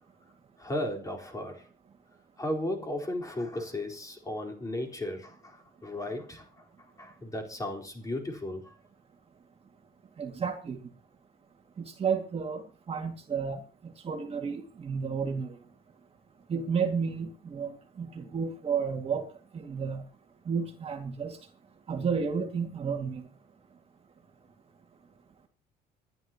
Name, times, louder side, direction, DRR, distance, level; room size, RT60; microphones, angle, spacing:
voice 1, 0.6-1.7 2.4-6.6 7.0-8.7, left 1 dB, 20° left, 4.3 m, -35 dB
voice 2, 10.2-10.8 12.0-13.6 14.0-15.5 16.5-19.3 19.5-20.0 20.5-21.4 21.9-23.2, right 6 dB, 35° right, 2.2 m, -31 dB
27.5 x 11.0 x 3.0 m
cardioid pair, 110°, 17 cm